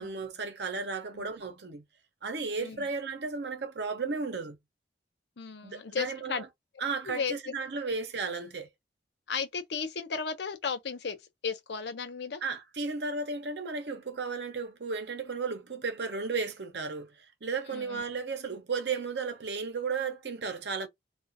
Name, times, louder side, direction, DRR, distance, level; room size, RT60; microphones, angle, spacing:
voice 1, 0.0-1.8 2.2-4.6 5.6-6.5 6.8-8.7 12.4-20.9, right 4 dB, 70° right, 0.7 m, -34 dB
voice 2, 5.4-6.4 7.0-7.3 9.3-11.2 11.4-12.4 17.7-18.0, left 5 dB, 75° left, 0.6 m, -34 dB
2.4 x 2.4 x 2.6 m
head